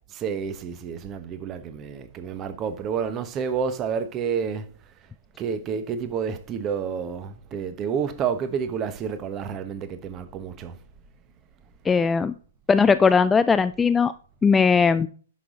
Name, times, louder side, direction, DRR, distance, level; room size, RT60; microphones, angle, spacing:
voice 1, 0.1-4.7 5.4-10.8, right 7 dB, 25° right, 1.1 m, -29 dB
voice 2, 11.9-12.3 12.7-14.1 14.4-15.1, left 5 dB, 10° left, 0.3 m, -19 dB
11.5 x 6.4 x 3.8 m
figure-of-eight pair, 115°, 0 cm